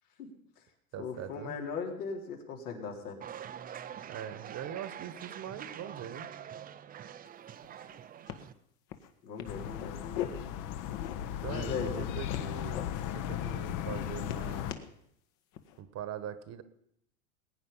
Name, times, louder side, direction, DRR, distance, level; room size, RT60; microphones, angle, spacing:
voice 1, 0.2-0.6 1.0-3.2 9.2-10.4 11.5-12.1, left 5 dB, 85° left, 0 dB, 4.0 m, -39 dB
voice 2, 0.9-1.5 4.1-6.3 11.2-14.7 15.8-16.6, right 9 dB, 35° right, 13 dB, 1.3 m, -42 dB
sound 1, 3.2-8.5, right 9 dB, 20° right, 0.6 m, -45 dB
sound 2, 7.2-7.3 7.6-8.0 8.3-8.5 8.9-9.1 9.4-10.3 10.8-11.4 11.8-12.8 13.3-13.5 13.8-14.9 15.5-15.8, left 12 dB, 60° left, 1.8 m, -41 dB
sound 3, 9.4-14.7, left 11 dB, 45° left, 1.0 m, -36 dB
21.0 x 9.3 x 5.6 m, 0.76 s
hypercardioid pair, 110°, 45 cm